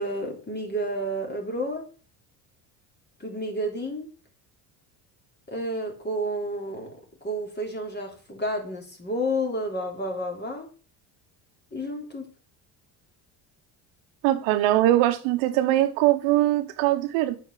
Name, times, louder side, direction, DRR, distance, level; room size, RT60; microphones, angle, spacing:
voice 1, 0.0-1.9 3.2-4.1 5.5-7.0 7.2-10.7 11.7-12.3, equal, 20° left, 3.6 m, -30 dB
voice 2, 14.2-17.4, right 14 dB, 80° right, 1.3 m, -21 dB
8.3 x 5.4 x 7.6 m
supercardioid pair, 85°, 46 cm